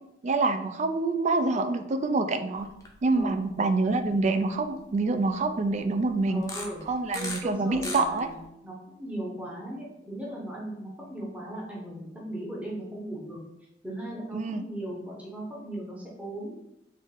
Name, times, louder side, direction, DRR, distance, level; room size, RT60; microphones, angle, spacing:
voice 1, 0.2-2.7 3.0-6.5 6.9-8.3 14.3-14.6, right 3 dB, 40° right, 9 dB, 0.3 m, -26 dB
sound 1, 2.7-2.9 3.3-3.5 4.2-4.3 6.4-7.4 7.7-8.4, left 2 dB, 20° left, 0.7 m, -37 dB
voice 2, 3.1-3.5 6.3-6.8 7.1-13.4 13.8-16.6, right 1 dB, 10° right, -5 dB, 0.9 m, -37 dB
3.7 x 3.1 x 3.7 m, 0.85 s
head